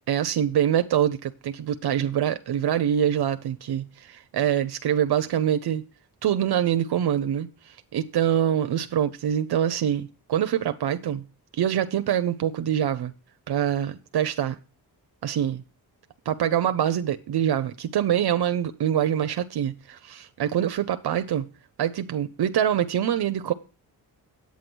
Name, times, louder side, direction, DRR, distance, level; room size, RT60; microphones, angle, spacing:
voice 1, 0.1-5.8 6.2-11.2 11.5-13.1 13.5-14.6 15.2-15.6 16.3-21.5 21.8-23.5, right 10 dB, 70° right, 0.7 m, -25 dB
9.4 x 8.6 x 6.1 m
wide cardioid pair, 115°, 40 cm